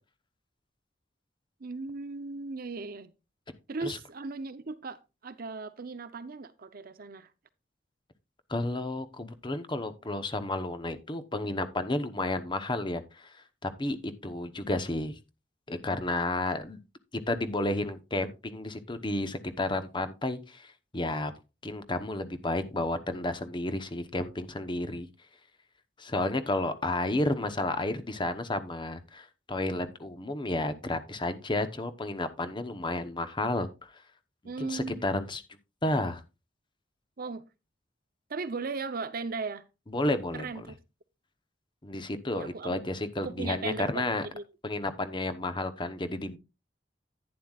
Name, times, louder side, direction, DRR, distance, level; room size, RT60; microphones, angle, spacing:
voice 1, 1.6-3.1 3.7-7.3 34.4-35.1 37.2-37.4 38.3-39.6 40.3-40.8 42.3-42.8 43.2-44.1 44.3-44.4, right 4 dB, 55° right, 0.7 m, -37 dB
voice 2, 8.5-13.3 13.6-15.1 15.7-16.8 17.3-21.3 21.6-25.1 26.0-33.7 34.6-35.4 35.8-36.2 39.9-40.5 41.8-44.2 44.6-46.4, left 2 dB, 25° left, 0.9 m, -31 dB
11.0 x 9.7 x 2.4 m
head